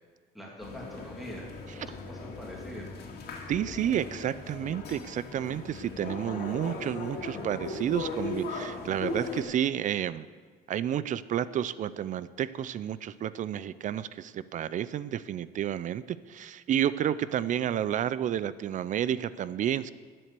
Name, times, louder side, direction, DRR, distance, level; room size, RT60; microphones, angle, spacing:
voice 1, 0.3-1.5 1.9-2.9, equal, ahead, -3 dB, 2.6 m, -43 dB
sound 1, 0.6-9.4, left 3 dB, 70° left, 2.4 m, -38 dB
voice 2, 3.5-10.3 10.7-19.9, right 10 dB, 50° right, 17 dB, 0.4 m, -31 dB
12.5 x 7.6 x 6.7 m, 1.5 s
cardioid pair, 110°, 17 cm